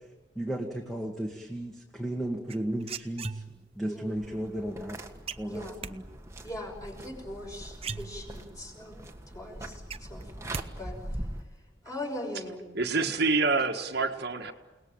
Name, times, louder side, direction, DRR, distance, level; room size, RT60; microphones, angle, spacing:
voice 1, 0.4-5.0 5.4-6.0, right 1 dB, ahead, 1 dB, 2.0 m, -34 dB
sound 1, 2.5-3.8 5.3-5.9 7.4-7.5 7.8-8.6 9.0-9.1 9.4-10.7 10.9-11.4, right 5 dB, 30° right, 0.9 m, -38 dB
voice 2, 3.8-4.1 5.5-5.8 6.4-9.1 9.3-11.3 11.8-12.6, left 1 dB, 15° left, 1 dB, 6.3 m, -40 dB
sound 2, 4.2-11.4, right 1 dB, 15° right, 1.9 m, -42 dB
voice 3, 12.7-14.5, right 3 dB, 50° right, 4 dB, 1.7 m, -27 dB
29.5 x 19.5 x 9.0 m, 1.2 s
head